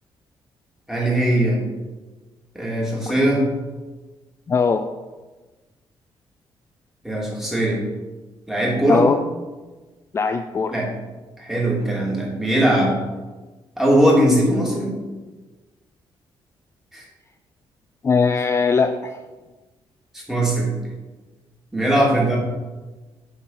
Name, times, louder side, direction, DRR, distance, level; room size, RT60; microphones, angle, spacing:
voice 1, 0.9-1.6 2.5-3.4 7.0-7.8 8.5-9.1 10.7-10.9 11.4-12.9 13.8-14.9 16.9-17.0 20.1-20.7 21.7-22.4, right 1 dB, 5° right, -4 dB, 2.7 m, -20 dB
voice 2, 4.5-4.9 8.9-9.2 10.1-10.7 18.0-19.2, left 5 dB, 30° left, 7 dB, 0.4 m, -20 dB
8.7 x 4.3 x 5.7 m, 1.2 s
cardioid pair, 115°, 9 cm